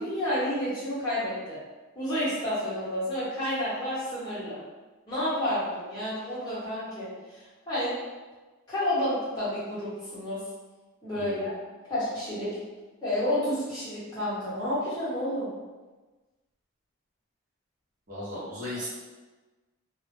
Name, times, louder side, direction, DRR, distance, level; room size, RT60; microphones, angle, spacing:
voice 1, 0.0-1.6 1.9-4.6 5.1-7.9 8.7-10.4 11.0-11.5 11.9-12.6 13.0-15.5 18.7-18.8, left 1 dB, 20° left, -11 dB, 0.9 m, -30 dB
voice 2, 18.1-18.9, left 1 dB, 40° right, -9 dB, 0.7 m, -36 dB
2.0 x 2.0 x 3.0 m, 1.2 s
head